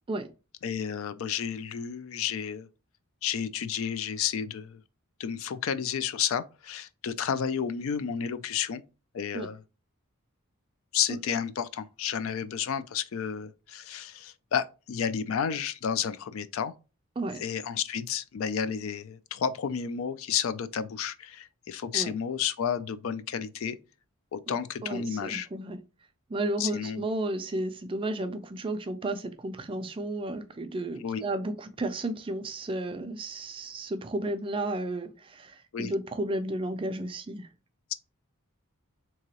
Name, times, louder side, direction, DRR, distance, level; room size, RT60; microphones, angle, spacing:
voice 1, 0.6-2.7 3.2-4.8 5.2-8.8 9.1-9.6 10.9-16.7 17.4-23.8 24.3-25.5 26.6-27.1 31.0-31.2 35.7-35.9, left 8 dB, 65° left, 0.3 m, -31 dB
voice 2, 24.8-25.8 26.3-37.5, right 1 dB, 25° right, 0.4 m, -33 dB
3.6 x 2.9 x 2.8 m
head